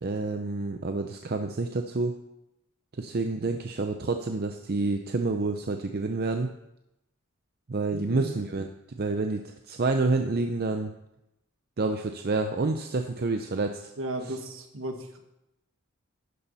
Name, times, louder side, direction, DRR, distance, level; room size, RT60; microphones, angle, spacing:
voice 1, 0.0-2.1 3.0-6.5 7.7-8.7 9.0-10.9 11.8-13.9, right 3 dB, 45° right, 6 dB, 0.6 m, -28 dB
voice 2, 7.9-8.3 14.0-15.2, right 1 dB, 70° right, 4 dB, 1.5 m, -35 dB
11.5 x 6.9 x 5.5 m, 0.88 s
head